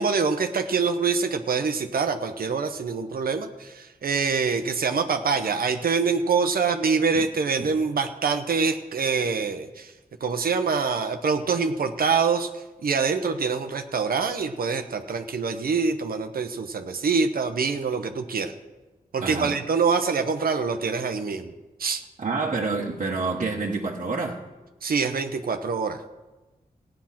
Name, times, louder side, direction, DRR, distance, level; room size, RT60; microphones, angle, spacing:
voice 1, 0.0-9.9 10.2-18.5 19.1-21.5 21.8-22.0 24.8-26.0, right 5 dB, 75° right, 6 dB, 0.9 m, -25 dB
voice 2, 19.2-19.6 22.2-24.4, right 3 dB, 55° right, -4 dB, 1.4 m, -28 dB
16.5 x 9.0 x 5.8 m, 1.1 s
wide cardioid pair, 110°, 15 cm